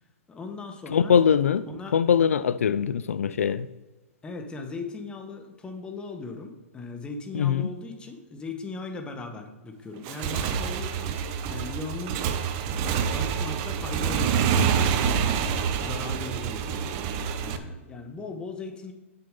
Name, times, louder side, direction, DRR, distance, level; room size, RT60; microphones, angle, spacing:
voice 1, 0.3-1.2 1.7-2.0 4.2-11.2 11.5-12.3 12.8-16.8 17.4-18.9, left 3 dB, 15° left, 1.2 m, -38 dB
voice 2, 0.9-1.6 1.9-3.7 7.3-7.7, left 7 dB, 80° left, 0.4 m, -22 dB
Motorcycle / Engine, 9.9-17.6, right 7 dB, 40° right, 0.8 m, -27 dB
6.7 x 6.7 x 5.3 m
hypercardioid pair, 130°, 7 cm